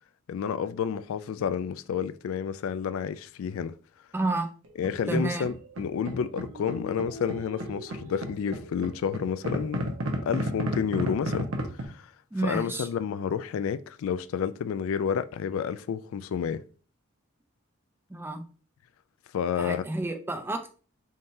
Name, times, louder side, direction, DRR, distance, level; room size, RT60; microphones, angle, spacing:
voice 1, 0.3-3.8 4.8-10.0 10.3-11.5 11.8-12.1 12.4-16.6 19.3-19.8, left 7 dB, 75° left, 0.3 m, -30 dB
voice 2, 4.1-4.5 5.1-5.5 12.3-12.9 18.1-18.4 19.6-20.8, right 2 dB, 10° right, 0.4 m, -30 dB
sound 1, 4.6-5.8 6.0-11.8, right 1 dB, 90° right, 1.0 m, -34 dB
4.2 x 3.7 x 2.6 m
head